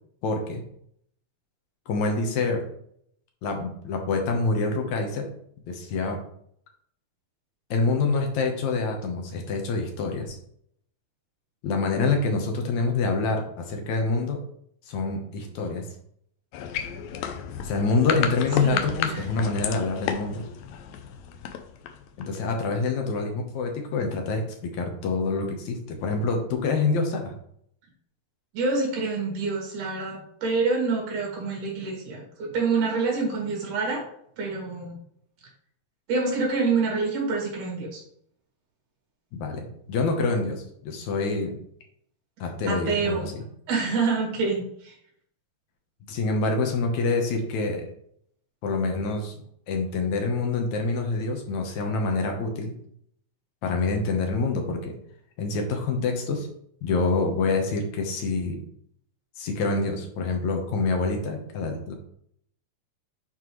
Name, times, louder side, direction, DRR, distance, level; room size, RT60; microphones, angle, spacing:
voice 1, 0.2-0.6 1.9-2.6 3.4-5.3 5.7-6.2 7.7-10.4 11.6-14.4 14.9-15.8 17.6-20.4 22.2-27.3 39.3-41.5 42.4-43.4 46.1-47.8 48.6-49.3 49.7-52.7 53.6-54.9 55.4-56.5 56.8-58.6 59.4-61.9, left 3 dB, 65° left, 3 dB, 2.2 m, -26 dB
sound 1, 16.5-22.4, left 8 dB, 80° left, 1.6 m, -32 dB
voice 2, 18.6-19.5 28.5-34.0 34.4-34.9 36.1-38.0 42.7-43.3 43.7-44.9, right 4 dB, 65° right, -2 dB, 3.6 m, -27 dB
9.5 x 4.4 x 3.1 m, 0.68 s
omnidirectional pair, 4.0 m